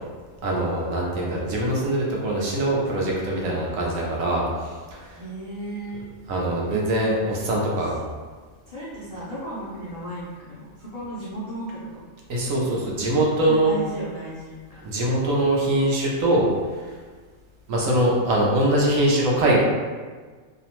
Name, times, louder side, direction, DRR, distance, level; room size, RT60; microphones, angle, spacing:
voice 1, 0.4-5.2 6.3-8.0 12.3-13.7 14.8-16.5 17.7-19.6, right 1 dB, 80° right, -3 dB, 1.0 m, -23 dB
voice 2, 5.1-6.0 6.7-6.8 8.7-12.0 13.5-14.9, right 1 dB, 80° left, -9 dB, 0.3 m, -35 dB
2.7 x 2.1 x 2.9 m, 1.5 s
omnidirectional pair, 1.4 m